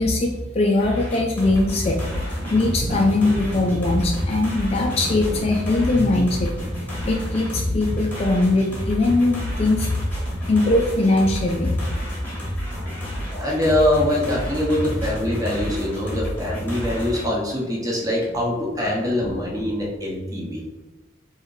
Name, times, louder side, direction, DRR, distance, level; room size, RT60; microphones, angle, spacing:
voice 1, 0.0-6.5 7.0-10.1 10.5-11.8, left 2 dB, 30° left, 1 dB, 0.3 m, -21 dB
sound 1, 0.8-17.2, equal, 10° left, 1.1 m, -30 dB
Thunder, 1.0-20.2, right 1 dB, 50° right, 0.6 m, -40 dB
voice 2, 13.4-20.6, left 1 dB, 15° right, -2 dB, 0.9 m, -23 dB
3.5 x 2.6 x 4.6 m, 1.2 s
head